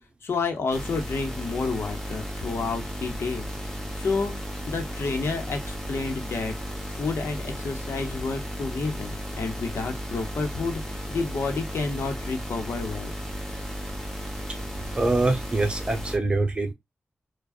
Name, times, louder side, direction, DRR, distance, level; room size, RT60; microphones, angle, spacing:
voice 1, 0.2-4.3 4.7-6.5 6.9-13.1, left 4 dB, 85° left, 0.9 m, -30 dB
sound 1, 0.7-16.2, equal, 10° left, 1.0 m, -34 dB
voice 2, 14.9-16.7, right 2 dB, 25° right, 0.9 m, -24 dB
4.8 x 2.3 x 2.5 m
wide cardioid pair, 85°, 4 cm